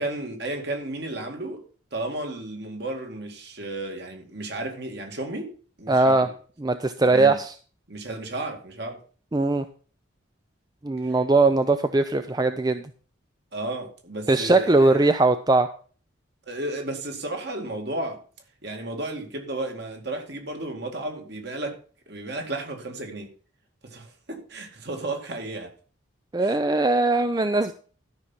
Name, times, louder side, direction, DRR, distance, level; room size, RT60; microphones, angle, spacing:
voice 1, 0.0-1.6 1.9-6.3 7.0-7.4 7.9-9.0 11.0-11.1 13.5-15.1 16.5-18.2 18.6-21.8 22.1-23.3 23.9-25.7 26.4-26.6, right 2 dB, 55° right, 2.3 m, -33 dB
voice 2, 5.9-6.3 6.6-7.5 9.3-9.6 10.8-12.8 14.3-15.7 26.3-27.7, right 2 dB, 20° right, 0.4 m, -20 dB
13.0 x 6.0 x 5.7 m
head